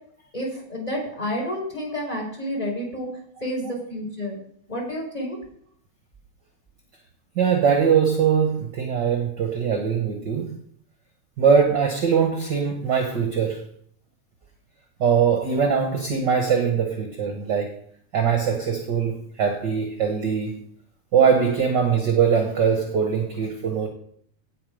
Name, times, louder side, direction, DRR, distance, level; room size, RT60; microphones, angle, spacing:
voice 1, 0.3-3.1 3.4-4.4 4.7-5.4, equal, 10° left, 0 dB, 4.3 m, -30 dB
voice 2, 7.3-10.5 11.4-13.6 15.0-17.7 18.1-20.6 21.1-23.9, right 7 dB, 50° right, 3 dB, 1.5 m, -21 dB
17.0 x 5.8 x 5.1 m, 0.63 s
omnidirectional pair, 3.4 m